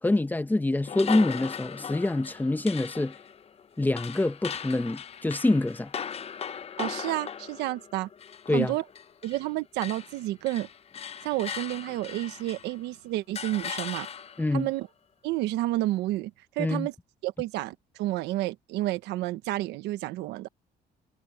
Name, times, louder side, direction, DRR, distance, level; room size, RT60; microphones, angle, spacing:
voice 1, 0.0-3.2 3.8-5.9 8.5-8.8 14.4-14.7 16.6-16.9, left 2 dB, 10° left, 1.1 m, -26 dB
sound 1, 0.9-9.5 9.8-12.8 13.4-14.6, left 7 dB, 35° left, 0.8 m, -38 dB
voice 2, 6.8-8.1 8.5-8.8 9.2-10.7 11.2-14.1 14.5-14.9 15.2-16.9 17.2-20.5, right 16 dB, 90° right, 1.2 m, -30 dB
cardioid pair, 110°, 17 cm